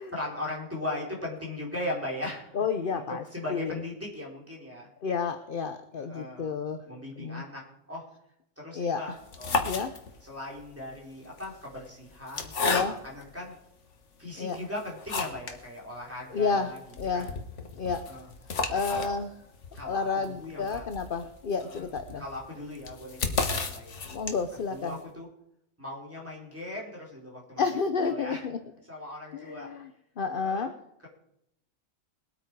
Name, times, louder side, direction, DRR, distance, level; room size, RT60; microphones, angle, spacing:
voice 1, 0.1-2.6 2.9-4.9 6.0-6.6 6.9-7.6 7.9-8.0 8.6-9.8 10.2-13.5 14.2-16.8 17.1-17.3 18.1-18.3 18.9-19.2 19.7-20.8 21.6-21.9 22.2-24.0 24.7-25.3 25.8-27.6 28.0-28.4 28.9-29.7 30.4-30.7, left 1 dB, 10° right, -4 dB, 4.3 m, -38 dB
voice 2, 2.5-3.2 3.5-3.8 5.0-6.8 7.2-7.4 8.7-9.0 9.6-9.9 12.6-12.9 14.4-14.6 16.3-16.7 17.0-17.3 17.8-18.0 18.7-19.3 19.8-22.2 24.1-25.0 27.6-28.6 29.3-29.9 30.2-30.7, left 5 dB, 45° left, 8 dB, 0.9 m, -30 dB
sound 1, 9.2-10.4 11.2-13.3 13.9-14.0 14.5-15.6 15.9-16.0 16.3-16.4 16.8-24.6, left 4 dB, 65° left, 1.7 m, -33 dB
21.5 x 8.7 x 4.7 m, 0.81 s
omnidirectional pair, 1.4 m